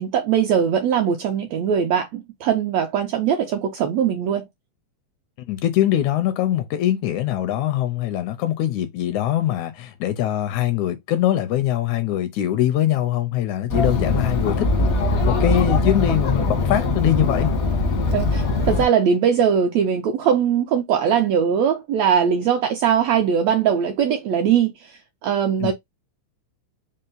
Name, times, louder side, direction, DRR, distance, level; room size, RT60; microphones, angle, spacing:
voice 1, 0.0-4.5 18.1-25.7, right 8 dB, 80° right, 1.5 m, -21 dB
voice 2, 5.5-14.7 15.3-17.5 25.6-25.7, left 12 dB, 80° left, 1.8 m, -22 dB
Chatter, 13.7-18.9, left 3 dB, 65° left, 0.8 m, -21 dB
5.4 x 2.0 x 3.8 m
omnidirectional pair, 3.6 m